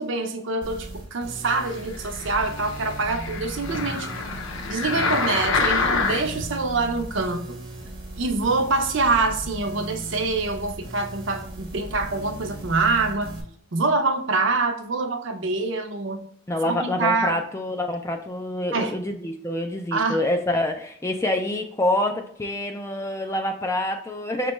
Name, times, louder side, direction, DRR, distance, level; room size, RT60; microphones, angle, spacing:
voice 1, 0.0-4.1 4.7-7.6 8.2-13.4 13.7-16.3 16.7-17.4 18.7-18.9 19.9-20.2, right 3 dB, 65° right, 6 dB, 0.6 m, -25 dB
sound 1, 0.6-13.4, right 1 dB, 20° right, 0.7 m, -38 dB
sound 2, 1.9-6.5 7.1-7.2, left 4 dB, 75° left, 0.6 m, -27 dB
voice 2, 16.5-24.5, left 1 dB, 15° left, 4 dB, 0.3 m, -26 dB
6.0 x 2.3 x 3.0 m, 0.64 s
head